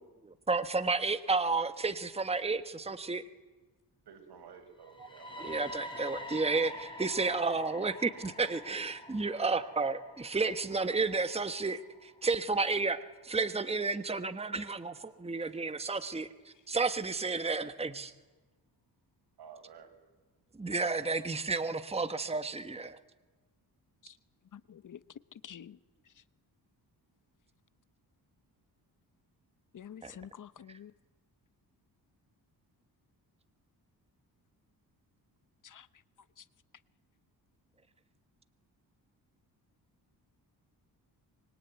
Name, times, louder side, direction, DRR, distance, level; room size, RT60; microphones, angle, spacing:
voice 1, 0.5-3.2 5.0-5.1 5.4-16.3 16.7-18.1 20.6-23.0 30.0-30.1, right 3 dB, 15° right, 1.3 m, -32 dB
voice 2, 4.1-5.7 5.9-6.0 19.4-19.9, right 7 dB, 80° right, 5.2 m, -52 dB
sound 1, 4.8-12.7, left 1 dB, 10° left, 6.1 m, -47 dB
voice 3, 24.5-25.0 25.4-25.8 29.7-30.9 35.6-35.9 36.4-36.5, left 9 dB, 50° left, 1.0 m, -48 dB
26.0 x 23.5 x 9.4 m
cardioid pair, 95°, 39 cm